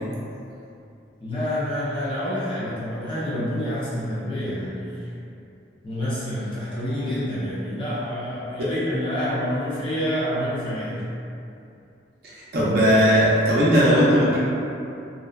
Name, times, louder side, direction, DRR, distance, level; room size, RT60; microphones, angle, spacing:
voice 1, 1.2-4.9 5.8-11.0, equal, 30° left, -9 dB, 0.6 m, -27 dB
voice 2, 12.5-14.4, equal, 55° right, -8 dB, 0.6 m, -17 dB
2.6 x 2.2 x 2.3 m, 2.6 s
head